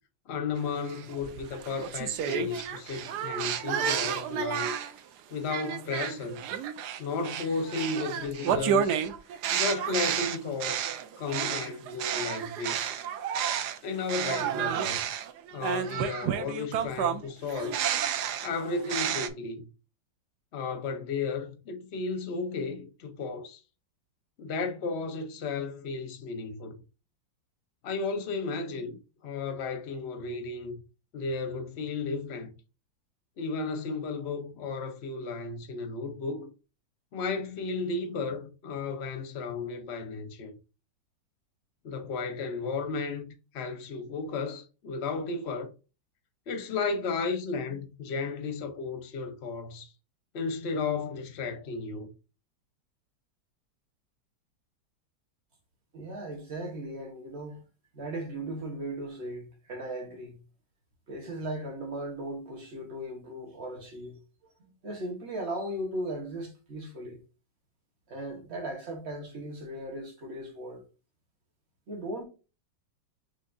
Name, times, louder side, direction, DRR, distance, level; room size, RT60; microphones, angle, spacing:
voice 1, 0.3-4.7 5.3-6.4 7.0-9.0 9.5-13.0 13.8-15.0 15.5-17.8 18.4-19.7 20.5-23.6 24.4-26.7 27.8-30.8 31.1-32.5 33.4-36.5 37.1-40.5 41.8-45.7 46.5-49.9 50.3-52.1, left 4 dB, 55° left, 0.7 m, -34 dB
sound 1, 0.9-5.0 5.5-13.8 14.1-19.3, right 9 dB, 70° right, 1.1 m, -31 dB
voice 2, 55.9-57.6 57.9-60.4 61.1-64.2 64.8-67.2 68.1-70.8 71.9-72.2, right 1 dB, 40° right, 1.4 m, -37 dB
6.2 x 2.8 x 2.5 m
omnidirectional pair, 2.0 m